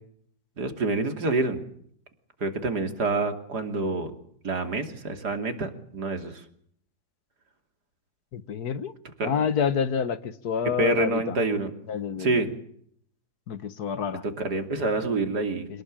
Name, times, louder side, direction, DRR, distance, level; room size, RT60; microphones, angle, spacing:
voice 1, 0.6-1.6 2.4-4.1 4.4-6.4 9.2-9.3 10.8-11.7 12.2-12.5 14.2-15.7, right 2 dB, 75° right, 3.4 m, -27 dB
voice 2, 8.3-8.9 9.2-11.4 11.9-12.5 13.5-14.2 15.7-15.8, left 7 dB, 70° left, 1.7 m, -28 dB
27.0 x 19.0 x 8.9 m
omnidirectional pair, 1.7 m